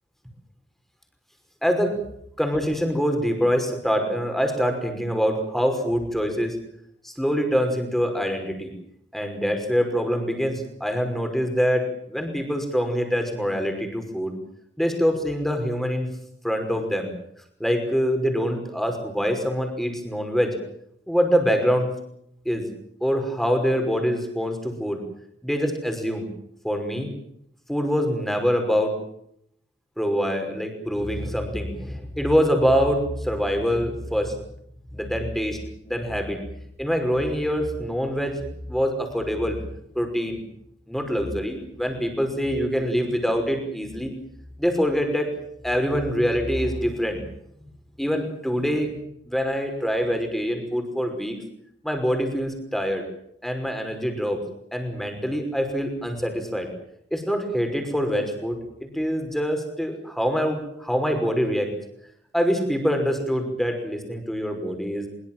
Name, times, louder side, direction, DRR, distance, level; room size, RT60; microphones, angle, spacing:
voice 1, 1.6-2.0 2.4-6.6 7.0-8.7 9.1-14.4 14.8-16.1 16.4-17.1 17.6-20.5 21.1-21.9 22.5-22.7 23.0-25.0 25.4-26.3 26.6-27.1 27.7-28.9 30.0-34.4 34.9-35.6 35.8-36.4 36.8-38.4 38.7-39.7 39.9-40.4 40.9-44.1 44.6-45.3 45.6-47.2 48.0-51.4 51.8-53.0 53.4-54.4 54.7-56.7 57.1-61.7 62.3-65.1, equal, ahead, 5 dB, 5.6 m, -25 dB
23.5 x 23.5 x 7.6 m, 0.72 s
head